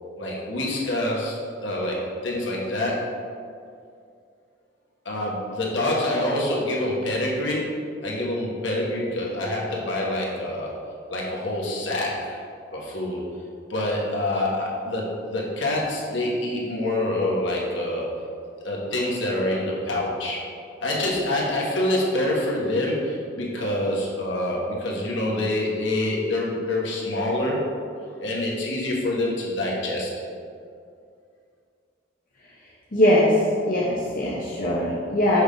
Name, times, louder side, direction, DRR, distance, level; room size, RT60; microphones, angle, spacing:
voice 1, 0.2-3.1 5.0-10.7 11.1-12.4 12.7-13.2 13.7-18.1 18.6-20.4 20.8-27.6 28.2-30.2, left 1 dB, 65° left, -3 dB, 1.3 m, -26 dB
voice 2, 32.9-33.3 33.6-35.4, left 1 dB, 45° left, -6 dB, 0.8 m, -21 dB
6.3 x 3.5 x 5.0 m, 2.3 s
head